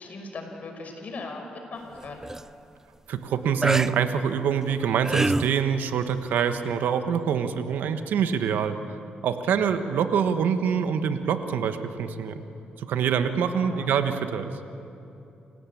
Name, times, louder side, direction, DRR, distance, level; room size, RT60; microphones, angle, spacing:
voice 1, 0.0-1.4 1.7-2.2 13.6-13.9, left 3 dB, 55° left, 3 dB, 5.5 m, -38 dB
sound 1, 2.0-2.4 3.6-3.9 4.7-5.6 6.7-6.8, right 2 dB, 15° right, 0.5 m, -25 dB
voice 2, 3.1-8.8 9.2-12.4 12.8-14.5, right 7 dB, 85° right, 8 dB, 1.4 m, -25 dB
28.5 x 17.0 x 8.6 m, 2.8 s
cardioid pair, 75°, 3 cm